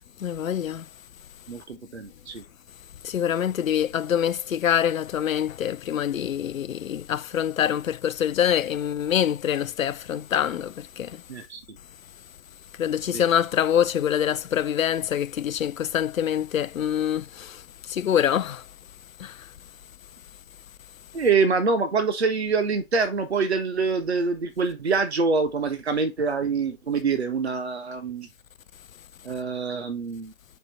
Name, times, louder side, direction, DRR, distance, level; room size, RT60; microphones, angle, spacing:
voice 1, 0.2-0.8 3.0-11.2 12.8-17.6 17.9-18.6 19.2-19.3, left 9 dB, 75° left, 0.5 m, -25 dB
voice 2, 1.5-2.4 11.3-11.8 13.1-13.2 21.1-28.3 29.2-30.3, right 4 dB, 50° right, 1.3 m, -25 dB
5.1 x 4.4 x 4.1 m
figure-of-eight pair, 160°, 41 cm